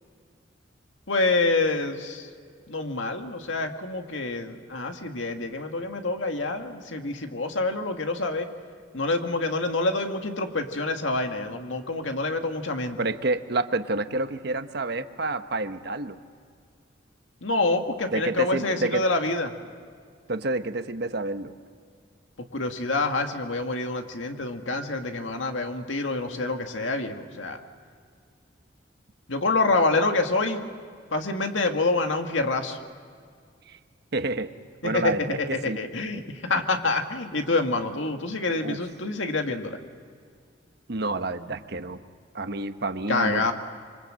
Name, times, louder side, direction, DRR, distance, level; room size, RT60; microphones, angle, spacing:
voice 1, 1.1-2.3 2.7-8.5 8.9-13.0 17.4-19.5 22.5-27.6 29.3-30.7 31.1-32.8 34.8-39.8 43.1-43.5, left 3 dB, 85° left, 5 dB, 1.9 m, -27 dB
voice 2, 13.0-16.2 18.1-19.1 20.3-21.5 33.7-33.8 34.1-34.5 34.8-35.8 38.6-38.8 40.9-42.0 42.3-43.5, right 2 dB, 60° right, 9 dB, 1.1 m, -29 dB
26.5 x 24.5 x 7.7 m, 2.1 s
head